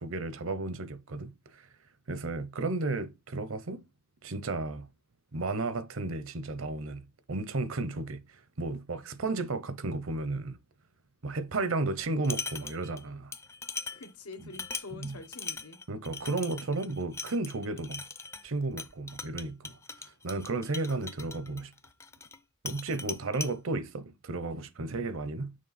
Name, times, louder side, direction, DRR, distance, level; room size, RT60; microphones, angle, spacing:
voice 1, 0.0-1.7 2.1-3.8 4.2-4.9 5.3-7.0 7.3-10.6 11.2-13.3 14.4-14.5 15.0-15.2 15.9-18.0 18.4-19.8 20.0-21.7 22.6-25.5, right 3 dB, 60° right, 0.7 m, -33 dB
sound 1, 12.0-13.0 13.3-22.4 22.7-23.5, left 4 dB, 10° left, 0.4 m, -40 dB
voice 2, 13.9-15.8, left 3 dB, 90° left, 1.3 m, -46 dB
6.5 x 3.6 x 4.1 m
head